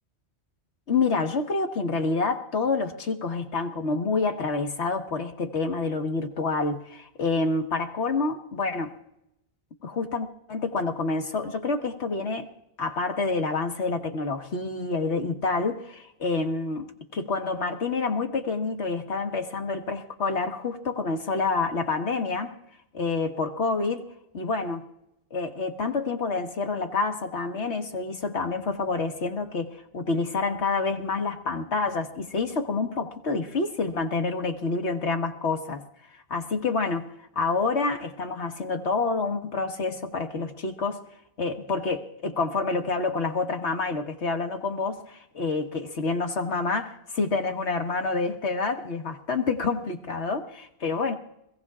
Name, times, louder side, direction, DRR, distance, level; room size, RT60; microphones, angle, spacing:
voice 1, 0.9-8.9 9.8-12.5 12.8-22.5 22.9-24.1 24.3-24.8 25.3-35.8 36.3-37.1 37.3-41.1 41.4-51.1, left 3 dB, 85° left, 5 dB, 1.7 m, -28 dB
25.5 x 16.5 x 2.4 m, 0.84 s
omnidirectional pair, 1.1 m